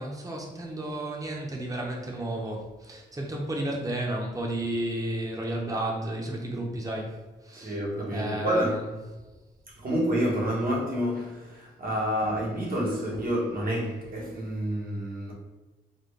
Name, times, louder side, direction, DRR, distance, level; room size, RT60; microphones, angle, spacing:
voice 1, 0.0-7.1 7.4-7.8 8.1-8.9, right 1 dB, 20° right, 0.8 m, -32 dB
voice 2, 7.5-8.8 9.8-15.3, equal, 55° right, 1.2 m, -28 dB
4.2 x 2.1 x 3.2 m
supercardioid pair, 55°, 18 cm